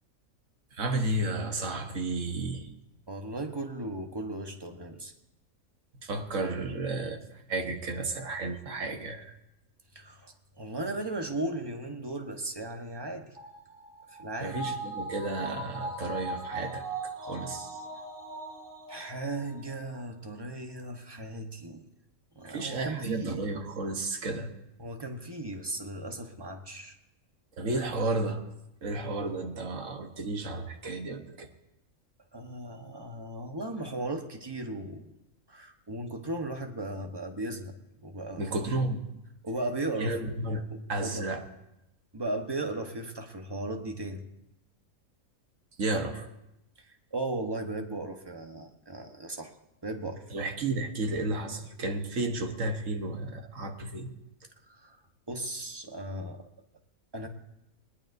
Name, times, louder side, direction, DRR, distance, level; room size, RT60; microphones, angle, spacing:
voice 1, 0.7-2.7 6.0-7.2 7.5-9.4 14.4-17.8 22.4-24.5 27.6-28.4 28.8-31.5 38.4-39.0 40.0-41.4 45.8-46.3 50.3-54.1, right 2 dB, 65° right, 5 dB, 1.5 m, -32 dB
voice 2, 3.1-5.1 9.9-10.3 10.6-13.3 14.2-14.7 18.9-21.9 22.3-23.4 24.8-26.9 32.3-35.1 35.5-37.7 38.0-38.5 39.4-40.2 40.7-41.2 42.1-44.2 46.9-49.5 49.8-50.3 54.7-55.0 55.3-56.5 57.1-57.3, right 2 dB, 20° right, 4 dB, 1.1 m, -36 dB
sound 1, 13.4-20.0 20.4-20.5, right 2 dB, 40° right, 3.2 m, -39 dB
20.0 x 19.0 x 2.7 m, 0.89 s
omnidirectional pair, 1.5 m